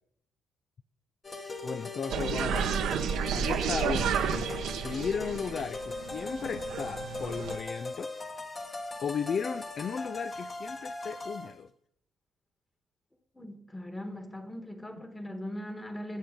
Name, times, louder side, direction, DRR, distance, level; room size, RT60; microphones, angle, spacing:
sound 1, 1.2-11.5, left 2 dB, 30° left, 1.3 m, -39 dB
voice 1, 1.6-2.8 3.3-8.1 9.0-11.7, left 6 dB, 50° left, 0.3 m, -35 dB
sound 2, 2.1-7.6, right 8 dB, 85° right, 0.9 m, -32 dB
voice 2, 13.3-16.2, left 1 dB, 15° left, 1.5 m, -40 dB
20.5 x 7.2 x 3.8 m
cardioid pair, 90°, 0 cm